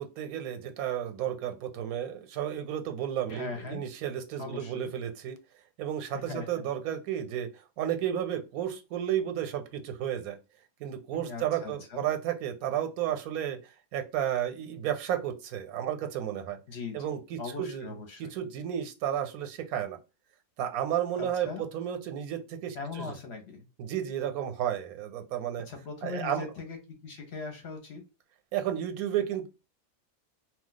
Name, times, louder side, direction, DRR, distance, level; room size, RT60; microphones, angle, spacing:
voice 1, 0.0-5.4 5.8-10.4 10.8-13.6 13.9-16.6 16.9-17.9 18.2-20.0 20.6-23.2 23.8-25.7 26.0-26.4 28.5-29.5, right 10 dB, 85° right, 7 dB, 1.1 m, -32 dB
voice 2, 3.3-3.8 4.4-4.9 6.1-6.6 11.1-12.0 16.7-17.0 17.4-18.3 21.2-21.6 22.7-23.7 25.7-28.0, left 4 dB, 55° left, 4 dB, 0.8 m, -40 dB
2.3 x 2.3 x 3.8 m, 0.28 s
omnidirectional pair, 1.5 m